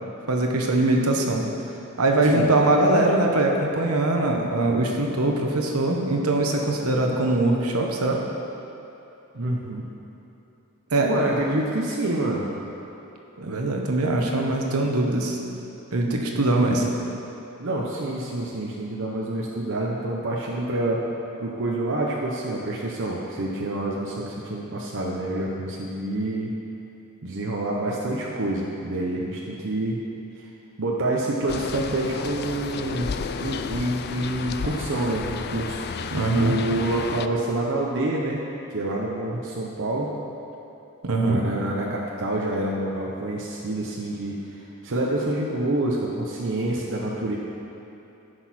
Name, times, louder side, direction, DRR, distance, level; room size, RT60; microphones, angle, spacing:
voice 1, 0.3-1.4 2.0-8.2 10.9-11.1 13.4-15.4 15.9-16.9 36.1-36.6 41.0-41.4, right 2 dB, 80° right, 1 dB, 1.2 m, -22 dB
voice 2, 9.3-9.9 11.0-12.5 17.6-21.0 21.4-26.5 27.2-30.0 30.4-30.5 30.8-33.1 33.4-35.8 36.4-38.4 38.7-40.1 41.2-47.4, right 1 dB, 60° right, -3 dB, 0.9 m, -27 dB
sound 1, 31.5-37.3, left 5 dB, 50° left, 0.4 m, -32 dB
14.5 x 6.1 x 4.3 m, 2.9 s
head